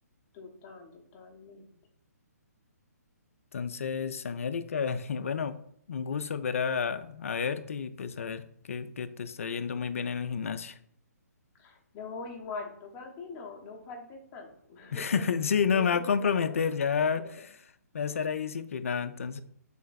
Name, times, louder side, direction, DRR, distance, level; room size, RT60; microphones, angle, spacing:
voice 1, 0.3-1.7 11.6-16.6 17.2-17.5, left 3 dB, 20° left, 1 dB, 0.7 m, -43 dB
voice 2, 3.5-5.6 5.9-8.4 8.7-10.8 14.9-17.2 17.9-19.4, left 6 dB, 55° left, 12 dB, 0.3 m, -30 dB
3.3 x 3.0 x 4.0 m, 0.67 s
figure-of-eight pair, 130°, 9 cm